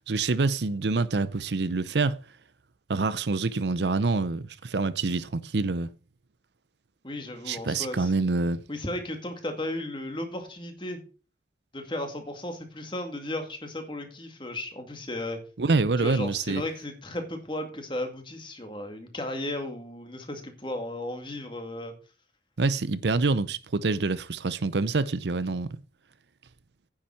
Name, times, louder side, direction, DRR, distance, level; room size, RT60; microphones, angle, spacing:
voice 1, 0.1-2.2 2.9-5.9 7.5-8.6 15.6-16.6 22.6-25.8, right 3 dB, 75° right, 0.6 m, -26 dB
voice 2, 7.0-8.1 8.7-11.0 11.7-15.4 16.0-21.9, left 1 dB, 25° left, 2.2 m, -35 dB
9.7 x 7.3 x 5.7 m
head